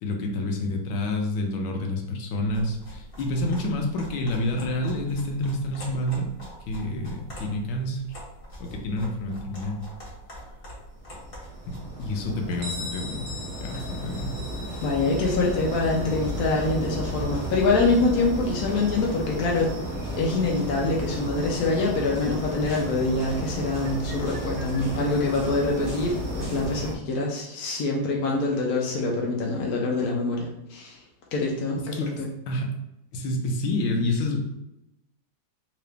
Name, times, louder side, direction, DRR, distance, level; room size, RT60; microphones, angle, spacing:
voice 1, 0.0-6.3 6.7-8.0 8.6-9.8 11.6-13.3 13.6-14.3 31.9-32.7 33.1-34.4, left 1 dB, 85° left, 2 dB, 1.5 m, -28 dB
sound 1, 2.4-12.7, equal, 35° left, 1.1 m, -44 dB
sound 2, 11.1-26.9, right 1 dB, 20° right, 0.5 m, -33 dB
Bell, 12.6-18.1, left 2 dB, 65° right, 0.7 m, -42 dB
voice 2, 14.8-19.7 20.2-31.0 31.3-32.3, left 3 dB, 65° left, -2 dB, 0.9 m, -25 dB
3.7 x 2.9 x 3.3 m, 0.88 s
omnidirectional pair, 2.2 m